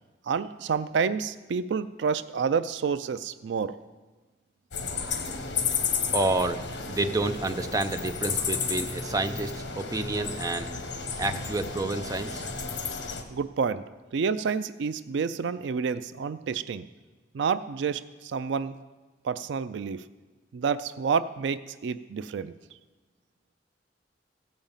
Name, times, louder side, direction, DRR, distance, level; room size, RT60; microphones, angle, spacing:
voice 1, 0.3-3.8 13.3-13.8 14.1-16.9 17.3-18.8 19.2-20.1 20.5-22.5, right 6 dB, 75° right, 14 dB, 0.4 m, -29 dB
sound 1, 4.7-13.2, left 5 dB, 75° left, 1.2 m, -32 dB
voice 2, 6.1-10.7 11.2-12.4, right 2 dB, 20° right, 7 dB, 0.5 m, -29 dB
15.5 x 5.2 x 7.2 m, 1.3 s
head